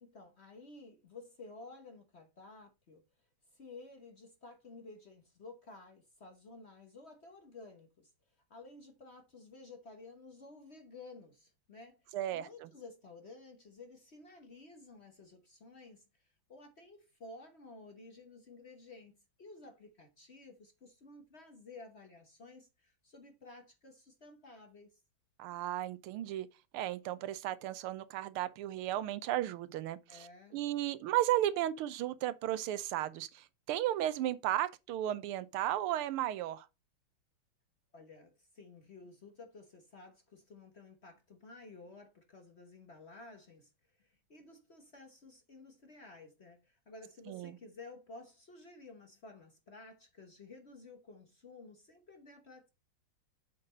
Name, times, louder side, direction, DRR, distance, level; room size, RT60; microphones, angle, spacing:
voice 1, 0.0-3.0 3.5-8.1 8.5-25.0 30.1-30.6 37.9-52.7, left 3 dB, 40° left, 1.0 m, -53 dB
voice 2, 12.1-12.7 25.4-26.5 26.7-30.3 30.5-36.7 47.3-47.6, right 13 dB, 90° right, 1.6 m, -34 dB
7.6 x 4.0 x 5.1 m
omnidirectional pair, 2.3 m